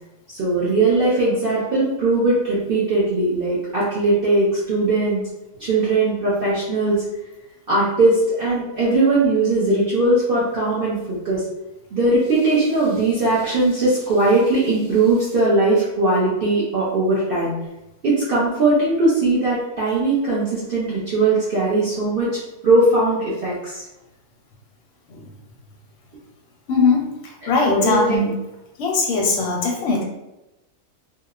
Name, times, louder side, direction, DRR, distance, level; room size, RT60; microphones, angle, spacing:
voice 1, 0.3-5.2 5.6-7.0 7.7-11.4 11.9-17.5 18.0-23.8 27.4-28.2, right 2 dB, 55° right, -8 dB, 0.7 m, -19 dB
voice 2, 26.7-28.3 28.8-30.0, left 3 dB, 65° left, 0 dB, 0.7 m, -20 dB
2.8 x 2.0 x 2.3 m, 0.95 s
omnidirectional pair, 1.5 m